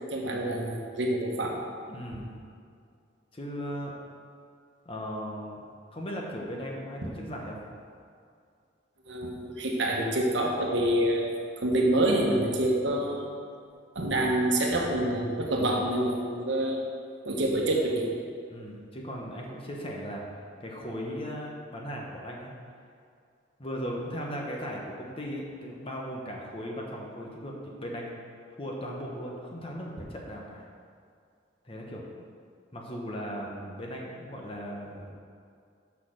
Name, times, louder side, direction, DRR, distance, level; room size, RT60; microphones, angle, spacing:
voice 1, 0.1-1.6 9.1-11.3 11.6-13.3 13.9-16.8 17.2-18.1, right 1 dB, 70° right, 0 dB, 1.2 m, -27 dB
voice 2, 1.9-2.4 3.3-3.9 4.8-5.6 5.9-7.6 18.5-20.3 20.6-22.5 23.6-28.1 28.6-30.6 31.6-32.0 32.7-35.1, equal, 30° left, -1 dB, 1.1 m, -37 dB
6.5 x 5.8 x 6.4 m, 2.3 s
head